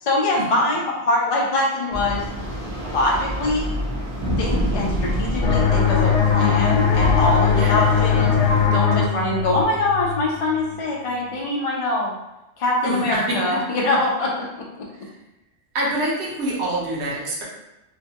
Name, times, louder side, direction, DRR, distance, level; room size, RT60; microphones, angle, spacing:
voice 1, 0.0-2.2 2.8-3.7 4.4-8.4 8.7-12.1 12.6-14.9, left 2 dB, 60° left, -2 dB, 0.3 m, -23 dB
sound 1, 1.9-8.7, equal, 20° right, 0.5 m, -26 dB
sound 2, 5.4-10.8, left 7 dB, 85° left, 0.9 m, -20 dB
voice 2, 7.5-7.8 12.8-13.6 14.9-15.1 15.7-17.4, right 1 dB, 70° right, -4 dB, 1.0 m, -26 dB
2.9 x 2.2 x 2.8 m, 0.93 s
omnidirectional pair, 1.2 m